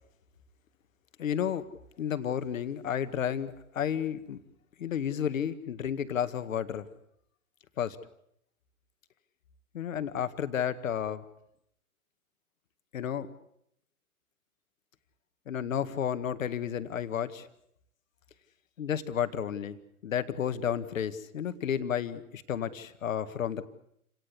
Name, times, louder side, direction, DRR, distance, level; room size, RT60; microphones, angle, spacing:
voice 1, 1.2-1.7 2.0-4.4 4.8-6.9 7.8-8.0 9.7-11.3 12.9-13.3 15.5-17.5 18.8-19.8 20.0-23.6, left 9 dB, 60° left, 11 dB, 2.0 m, -32 dB
29.0 x 18.0 x 8.5 m, 0.74 s
figure-of-eight pair, 110°, 44 cm